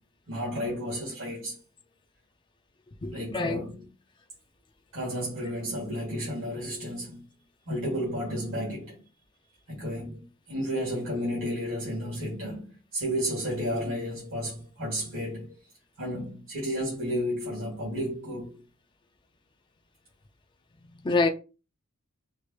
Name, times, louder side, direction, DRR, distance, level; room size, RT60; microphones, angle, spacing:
voice 1, 0.3-1.6 3.1-3.9 4.9-7.2 7.7-9.0 9.7-15.6 16.0-18.6, equal, 70° right, 1.7 m, -32 dB
voice 2, 3.0-3.6 21.0-21.3, left 3 dB, 20° left, 0.4 m, -25 dB
4.6 x 2.9 x 2.3 m
head